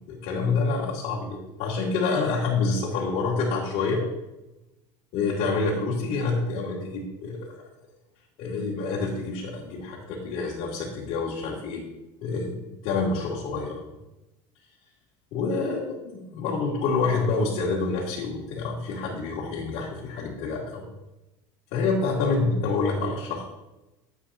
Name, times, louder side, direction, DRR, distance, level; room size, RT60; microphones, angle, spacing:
voice 1, 0.2-4.0 5.1-7.5 8.4-11.8 12.2-12.6 12.8-13.8 15.3-20.8 21.7-23.4, left 4 dB, 65° left, -5 dB, 2.2 m, -27 dB
12.5 x 8.0 x 2.7 m, 1.0 s
supercardioid pair, 130°, 13 cm